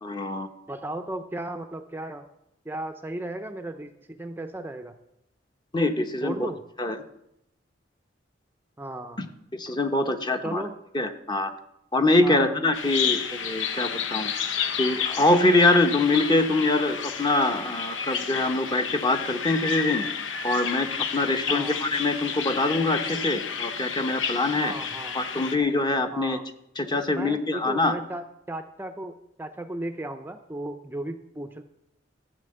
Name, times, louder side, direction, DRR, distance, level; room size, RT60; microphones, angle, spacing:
voice 1, 0.0-0.5 5.7-6.5 6.8-7.0 9.2-9.3 9.5-10.6 10.9-11.5 11.9-14.3 14.8-20.0 20.4-20.9 21.1-24.7 25.1-26.4 26.8-27.9, left 2 dB, 25° left, 7 dB, 0.9 m, -24 dB
voice 2, 0.7-2.3 2.6-5.0 6.2-6.6 8.8-9.2 10.4-10.7 12.2-12.6 21.5-21.8 24.6-25.1 26.1-26.4 27.1-31.6, right 1 dB, 10° right, 7 dB, 0.5 m, -35 dB
Bird vocalization bird call bird song, 12.7-25.6, left 7 dB, 80° left, 0.9 m, -31 dB
13.5 x 6.4 x 7.7 m, 0.82 s
head